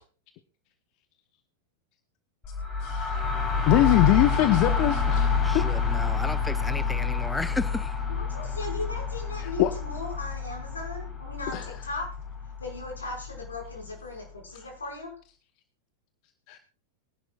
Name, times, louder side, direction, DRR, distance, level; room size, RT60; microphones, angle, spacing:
sound 1, 2.4-14.1, left 5 dB, 25° left, 6.0 m, -28 dB
voice 1, 2.8-3.2 3.7-5.3 9.6-9.7 11.5-11.7 16.5-16.6, left 14 dB, 45° left, 1.0 m, -22 dB
voice 2, 5.4-8.0, left 2 dB, 5° left, 0.5 m, -34 dB
voice 3, 8.1-12.2 12.6-15.2, left 2 dB, 75° left, 5.4 m, -37 dB
23.0 x 11.0 x 2.4 m
figure-of-eight pair, 90°, 0 cm